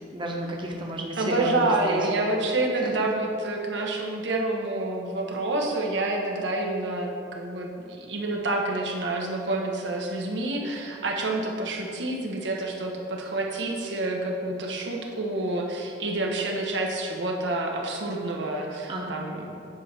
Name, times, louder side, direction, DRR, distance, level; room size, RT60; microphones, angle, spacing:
voice 1, 0.1-2.0 2.8-3.1 18.9-19.2, right 1 dB, 25° right, -1 dB, 1.0 m, -32 dB
voice 2, 1.2-19.4, right 2 dB, 80° right, 0 dB, 1.0 m, -28 dB
9.7 x 3.3 x 5.9 m, 2.6 s
head